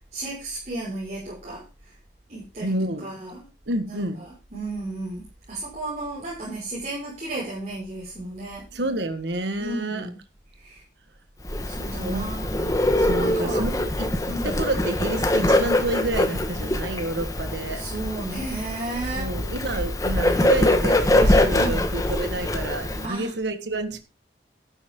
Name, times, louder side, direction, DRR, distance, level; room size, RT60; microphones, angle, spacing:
voice 1, 0.1-1.9 2.3-3.5 3.9-8.6 9.6-10.2 10.5-10.8 11.6-12.6 13.2-13.7 14.3-14.6 17.7-19.3 21.5-21.8 23.0-23.3, right 2 dB, 40° right, 5.5 m, -33 dB
voice 2, 2.6-3.1 3.7-4.2 8.7-10.1 12.0-17.9 19.2-24.0, right 2 dB, 80° right, 1.6 m, -29 dB
Bird, 11.4-23.1, left 1 dB, 20° left, 1.5 m, -23 dB
12.5 x 10.0 x 3.8 m
head